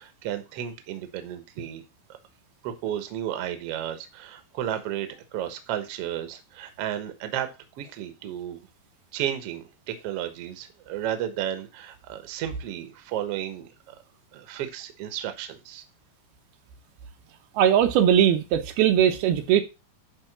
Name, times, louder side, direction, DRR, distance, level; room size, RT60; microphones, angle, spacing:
voice 1, 0.0-1.8 2.6-7.5 7.8-8.6 9.1-13.9 14.3-15.8, right 11 dB, 65° right, 1.6 m, -33 dB
voice 2, 17.6-19.6, right 10 dB, 90° right, 2.9 m, -20 dB
10.5 x 3.7 x 5.8 m
omnidirectional pair, 4.3 m